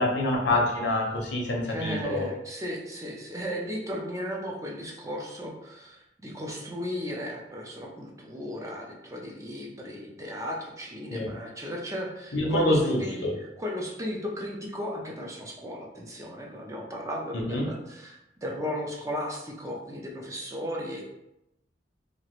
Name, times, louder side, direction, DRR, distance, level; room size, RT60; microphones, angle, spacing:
voice 1, 0.0-2.3 11.1-11.3 12.3-13.3 17.5-17.7, left 1 dB, 75° left, -1 dB, 0.7 m, -26 dB
voice 2, 1.6-21.0, equal, 20° right, -1 dB, 0.4 m, -35 dB
2.9 x 2.4 x 3.0 m, 0.86 s
head